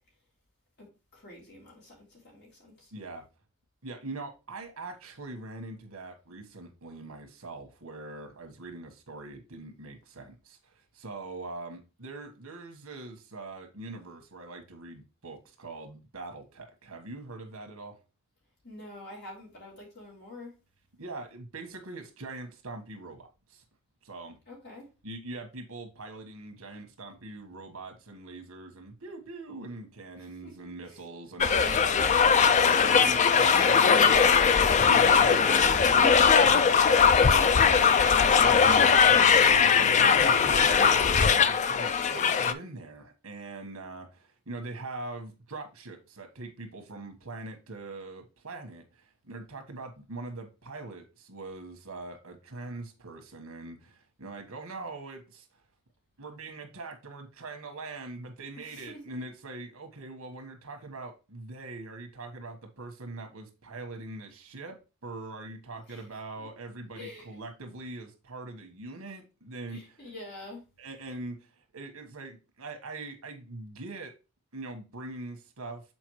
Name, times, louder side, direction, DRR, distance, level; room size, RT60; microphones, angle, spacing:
voice 1, 0.8-2.9 18.6-20.5 24.5-24.8 30.2-31.0 32.7-33.3 33.6-33.8 58.5-59.0 65.9-66.1 66.4-66.5 66.9-67.4 69.7-70.6, left 1 dB, 50° left, 3.3 m, -47 dB
voice 2, 2.9-3.2 3.8-18.0 21.0-23.6 24.0-24.4 25.0-34.4 34.8-36.7 37.1-37.9 38.4-55.5 56.2-64.8 65.0-70.0 70.8-74.1 74.5-75.8, right 2 dB, 85° right, 1.5 m, -42 dB
sound 1, 31.4-42.5, left 6 dB, 35° left, 0.3 m, -20 dB
7.0 x 4.4 x 3.1 m
head